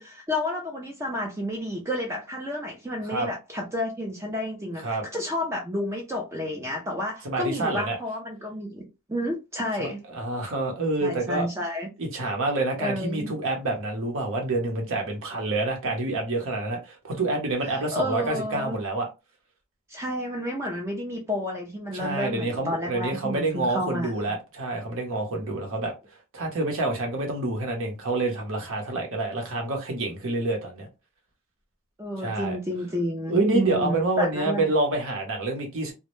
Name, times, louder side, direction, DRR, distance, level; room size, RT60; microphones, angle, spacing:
voice 1, 0.0-10.0 11.0-11.9 12.8-13.3 17.6-18.8 19.9-24.2 25.4-25.5 32.0-34.7, left 1 dB, 10° right, 0.4 m, -31 dB
voice 2, 7.2-8.0 9.8-11.5 12.0-19.1 21.9-25.9 26.3-30.9 32.2-32.6 33.3-35.9, right 2 dB, 65° right, 0.8 m, -27 dB
2.1 x 2.0 x 3.0 m
head